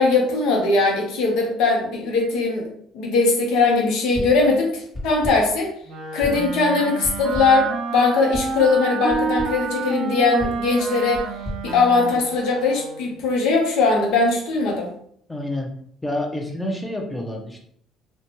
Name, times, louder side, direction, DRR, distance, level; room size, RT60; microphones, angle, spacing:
voice 1, 0.0-5.7 6.1-11.2 11.6-14.9, left 3 dB, 75° left, 1 dB, 0.7 m, -20 dB
sound 1, 4.1-4.5 4.9-5.6 6.2-6.6 7.0-7.7 8.3-8.6 9.1-9.6 10.4-12.5, left 1 dB, 25° left, 1.1 m, -35 dB
Wind instrument woodwind instrument, 5.9-13.2, right 4 dB, 65° right, 0.4 m, -29 dB
voice 2, 15.3-15.7 16.0-17.6, left 1 dB, 10° left, 1 dB, 0.7 m, -28 dB
2.5 x 2.2 x 2.9 m, 0.64 s
supercardioid pair, 80°, 0 cm